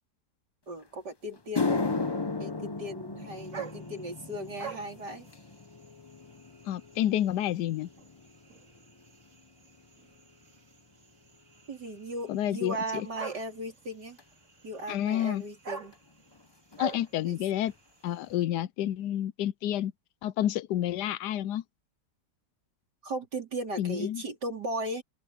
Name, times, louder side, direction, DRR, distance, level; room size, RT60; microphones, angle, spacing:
voice 1, 0.7-1.9 2.4-5.3 11.7-14.2 14.6-15.9 17.3-17.4 23.0-25.0, right 1 dB, 80° right, 4.8 m, -37 dB
sound 1, 0.8-0.9 1.4-9.9 10.2-10.6 11.3-11.4 14.2-14.3 15.9-16.0 16.2-16.5 16.7-17.3 17.7-17.8 18.3-18.4, left 3 dB, 35° left, 0.3 m, -36 dB
sound 2, 3.2-18.4, right 6 dB, 50° right, 2.4 m, -47 dB
voice 2, 6.7-7.9 12.3-13.1 14.9-15.4 16.8-17.7 18.0-19.9 20.2-21.6 23.8-24.2, left 12 dB, 85° left, 1.2 m, -29 dB
open air
omnidirectional pair, 1.8 m